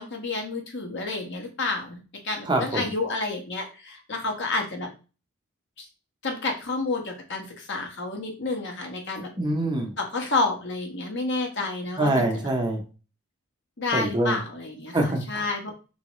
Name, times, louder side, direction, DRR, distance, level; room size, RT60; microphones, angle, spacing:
voice 1, 0.0-4.9 5.8-5.9 6.2-9.3 10.0-12.3 13.8-15.7, left 3 dB, 55° left, 2 dB, 1.2 m, -30 dB
voice 2, 2.5-2.9 9.3-9.9 12.0-12.8 13.9-14.4 14.9-15.7, right 1 dB, 20° right, 2 dB, 0.7 m, -25 dB
4.7 x 3.4 x 3.0 m, 0.33 s
head